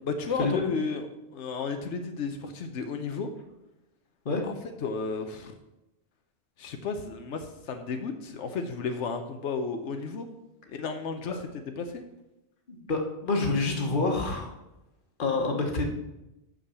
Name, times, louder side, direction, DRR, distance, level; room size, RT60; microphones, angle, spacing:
voice 1, 0.1-1.1 1.3-3.3 4.4-4.5 4.8-5.5 6.6-10.3 10.7-11.3 11.8-12.0, left 4 dB, 90° left, 6 dB, 1.1 m, -33 dB
voice 2, 12.9-14.5 15.2-15.8, left 3 dB, 50° left, 2 dB, 1.4 m, -27 dB
6.4 x 6.2 x 6.8 m, 0.94 s
omnidirectional pair, 1.1 m